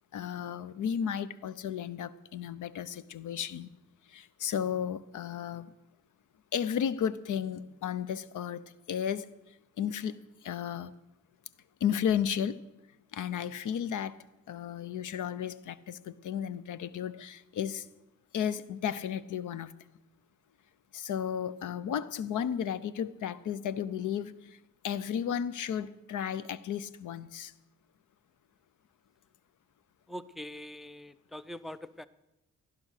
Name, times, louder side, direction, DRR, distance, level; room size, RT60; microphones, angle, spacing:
voice 1, 0.1-3.7 4.1-5.7 6.5-8.6 8.9-10.9 11.8-12.6 13.1-14.2 14.5-17.9 18.3-19.7 20.9-24.6 24.8-27.5, left 8 dB, 80° left, 17 dB, 0.7 m, -34 dB
voice 2, 30.1-32.1, left 1 dB, ahead, 16 dB, 0.5 m, -43 dB
15.5 x 11.0 x 6.5 m, 0.96 s
cardioid pair, 110°, 30 cm